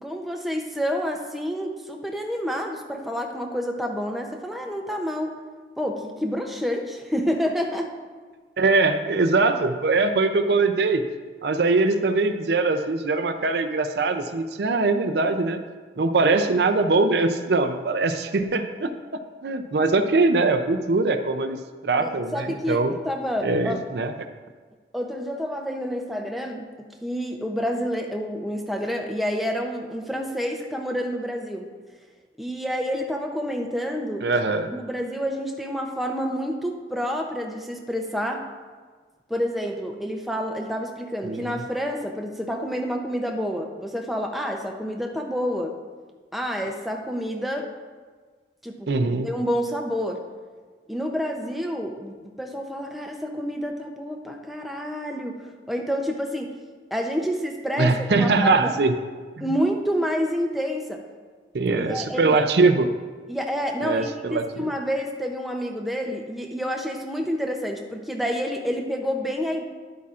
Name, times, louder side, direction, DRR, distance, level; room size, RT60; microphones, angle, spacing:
voice 1, 0.0-5.4 5.8-7.9 22.0-23.8 24.9-31.6 32.4-34.3 34.7-38.4 39.3-45.7 46.3-47.7 48.6-48.9 49.2-50.2 50.9-56.5 56.9-58.7 59.4-61.0 61.8-62.4 63.3-69.6, equal, ahead, 1 dB, 0.6 m, -28 dB
voice 2, 8.6-11.0 11.4-15.6 16.0-18.9 19.4-21.6 21.8-22.9 23.4-24.1 34.2-34.7 41.3-41.5 48.9-49.3 57.8-58.9 59.4-59.5 61.5-62.9 63.8-64.7, right 3 dB, 65° right, 7 dB, 0.5 m, -22 dB
10.5 x 8.3 x 2.5 m, 1.5 s
head